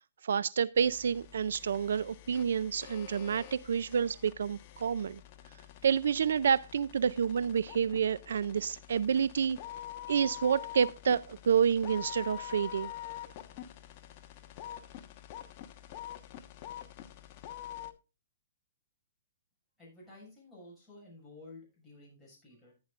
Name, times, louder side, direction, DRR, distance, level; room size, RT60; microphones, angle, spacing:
voice 1, 0.2-5.2 5.8-9.6 10.1-12.9, right 7 dB, 80° right, 0.4 m, -29 dB
sound 1, 0.8-17.9, left 11 dB, 35° left, 1.2 m, -46 dB
voice 2, 19.8-22.7, left 2 dB, 5° left, 6.5 m, -53 dB
14.5 x 9.6 x 2.4 m
hypercardioid pair, 155°, 0 cm